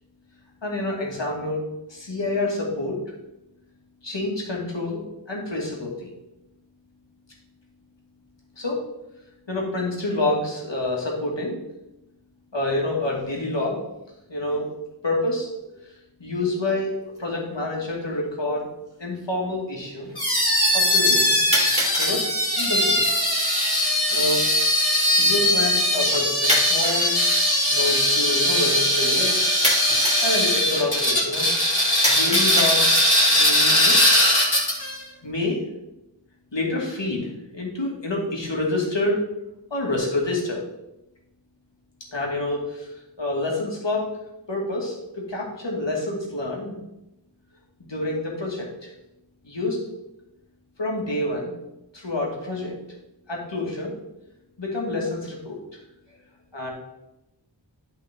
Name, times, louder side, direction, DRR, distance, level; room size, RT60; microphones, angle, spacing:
voice 1, 0.6-3.0 4.0-6.1 8.6-8.8 9.5-11.6 12.5-13.9 14.3-14.7 15.0-16.9 17.2-18.7 19.0-20.1 20.7-21.5 22.0-23.3 23.6-23.8 24.1-24.5 25.2-27.1 27.7-29.5 30.2-31.5 32.0-33.0 33.3-34.0 35.2-35.6 36.5-39.2 39.7-40.6 42.1-44.1 44.5-46.8 47.8-48.9 49.4-49.8 50.8-51.5 51.9-52.7 53.3-53.9 54.6-55.6 56.5-56.7, left 2 dB, 70° left, -2 dB, 2.4 m, -27 dB
sound 1, 17.2-17.3 18.2-18.3 21.5-22.2 26.5-27.4 29.6-30.3 32.0-33.2, equal, 15° right, 2.8 m, -26 dB
sound 2, 20.2-35.0, left 1 dB, 55° left, 2.5 m, -20 dB
11.0 x 5.5 x 3.7 m, 0.92 s
wide cardioid pair, 40°, 46 cm